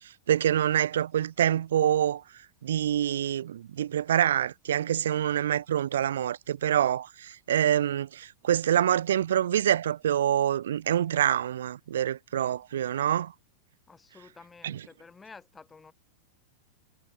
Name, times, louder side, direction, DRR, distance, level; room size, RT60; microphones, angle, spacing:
voice 1, 0.3-2.2 2.6-13.3 14.6-14.8, right 10 dB, 60° right, 0.7 m, -26 dB
voice 2, 13.9-15.9, left 4 dB, 15° left, 4.8 m, -51 dB
figure-of-eight pair, 90°, 0 cm